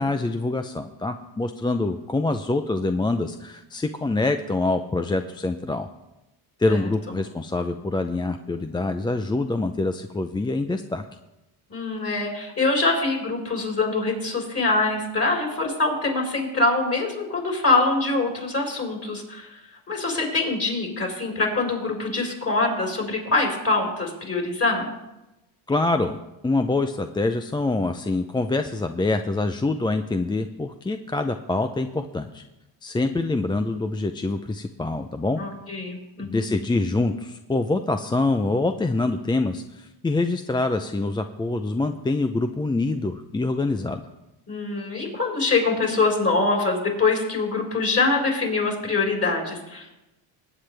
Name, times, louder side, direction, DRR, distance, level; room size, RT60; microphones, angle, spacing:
voice 1, 0.0-5.9 6.6-11.0 25.7-32.4 32.8-35.4 36.2-44.0, left 2 dB, 10° left, 7 dB, 0.4 m, -25 dB
voice 2, 11.7-19.5 19.9-24.9 35.4-36.5 44.5-49.9, left 3 dB, 30° left, 0 dB, 4.4 m, -24 dB
19.0 x 8.8 x 3.4 m, 0.96 s
cardioid pair, 90°, 45 cm